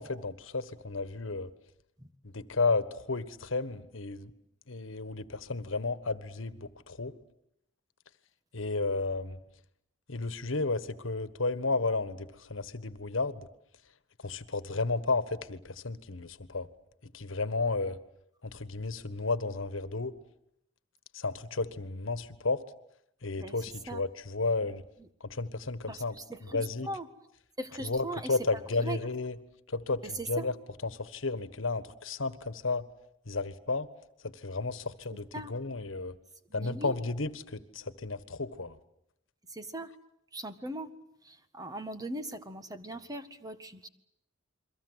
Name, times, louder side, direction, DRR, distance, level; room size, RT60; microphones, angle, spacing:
voice 1, 0.0-1.5 2.2-4.3 4.7-7.2 8.5-9.4 10.1-13.5 14.2-16.7 17.1-18.0 18.4-20.1 21.1-22.6 23.2-24.8 25.2-26.2 26.5-26.9 27.8-29.4 29.7-30.5 30.8-32.8 33.3-33.9 34.2-36.2 36.5-38.8, left 3 dB, 75° left, 14 dB, 1.5 m, -33 dB
voice 2, 25.9-27.1 27.6-28.3 28.8-29.0 30.0-30.5 35.3-35.5 36.5-36.9 39.5-39.9 40.3-40.9 41.2-43.9, right 1 dB, 20° right, 9 dB, 1.7 m, -39 dB
29.5 x 23.0 x 8.1 m, 0.76 s
head